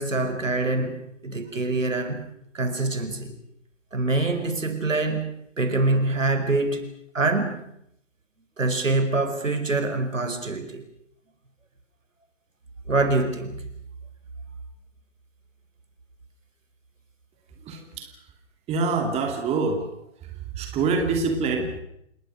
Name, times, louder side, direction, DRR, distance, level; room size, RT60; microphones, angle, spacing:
voice 1, 0.0-2.2 2.5-3.3 3.9-6.8 7.1-7.5 8.6-10.8 12.9-13.7, right 2 dB, 80° right, 8 dB, 4.9 m, -25 dB
voice 2, 17.6-18.3 18.7-19.9 20.2-21.8, right 4 dB, 15° right, 4 dB, 2.8 m, -26 dB
28.5 x 20.0 x 6.5 m, 0.76 s
figure-of-eight pair, 135°, 38 cm